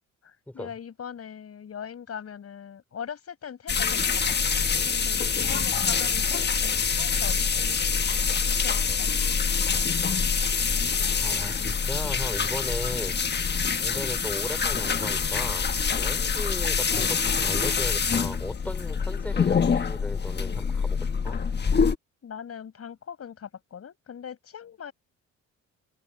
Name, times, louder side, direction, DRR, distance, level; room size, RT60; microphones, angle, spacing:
voice 1, 0.2-9.4 22.2-24.9, left 8 dB, 50° left, 6.4 m, -41 dB
sound 1, 3.7-21.9, left 6 dB, 35° left, 1.3 m, -25 dB
voice 2, 11.2-13.2 13.8-21.0 21.2-21.4, left 1 dB, 5° left, 3.6 m, -36 dB
open air
cardioid pair, 90°, 30 cm